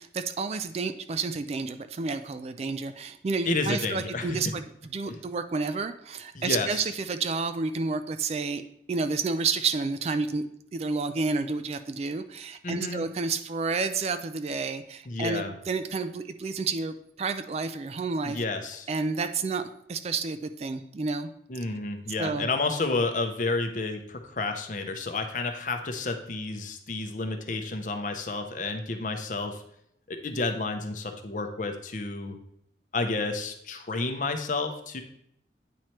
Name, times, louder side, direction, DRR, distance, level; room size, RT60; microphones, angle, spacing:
voice 1, 0.0-4.6 4.9-8.6 8.9-10.4 10.7-18.4 18.9-19.6 19.9-21.3 22.2-22.5, right 4 dB, 35° right, 10 dB, 0.3 m, -30 dB
voice 2, 3.4-4.4 5.1-5.2 6.3-6.8 12.6-13.0 15.1-15.5 18.2-18.9 21.5-29.6 30.1-32.3 32.9-35.0, left 3 dB, 45° left, 6 dB, 0.7 m, -30 dB
8.9 x 3.1 x 4.3 m, 0.72 s
head